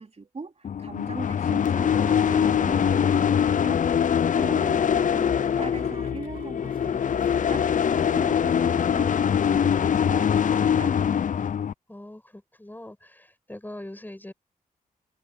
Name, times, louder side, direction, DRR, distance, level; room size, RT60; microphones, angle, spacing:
voice 1, 0.0-10.9, right 4 dB, 45° right, 3.8 m, -40 dB
sound 1, 0.7-11.7, left 8 dB, 55° left, 0.6 m, -23 dB
sound 2, 4.3-9.5, right 5 dB, 60° right, 2.7 m, -54 dB
voice 2, 11.9-14.3, left 1 dB, 10° left, 6.7 m, -43 dB
cardioid pair, 55°, 16 cm